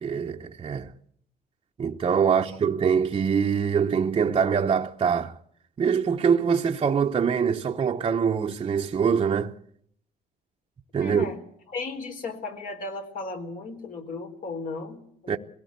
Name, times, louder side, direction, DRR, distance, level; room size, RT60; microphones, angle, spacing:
voice 1, 0.0-0.9 1.8-5.4 5.8-9.5 10.9-11.3 15.3-15.4, right 6 dB, 30° right, 0.9 m, -24 dB
voice 2, 11.0-11.4 11.7-15.4, left 3 dB, 55° left, 4.0 m, -35 dB
22.0 x 16.5 x 8.1 m
cardioid pair, 110°, 17 cm